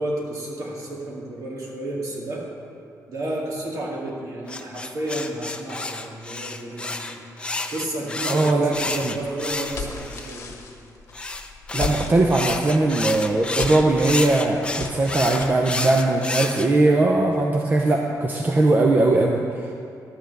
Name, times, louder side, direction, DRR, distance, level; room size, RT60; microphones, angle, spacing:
voice 1, 0.0-2.4 3.1-7.2 7.7-10.6, right 1 dB, 60° right, -3 dB, 2.2 m, -31 dB
sound 1, 4.5-10.3 11.1-16.7, left 3 dB, 15° left, 0.5 m, -30 dB
voice 2, 8.3-9.2 11.7-19.4, right 2 dB, 30° right, 0 dB, 0.6 m, -20 dB
sound 2, 9.7-15.7, left 4 dB, 45° left, 1.3 m, -37 dB
11.5 x 5.4 x 7.7 m, 2.5 s
wide cardioid pair, 150°, 6 cm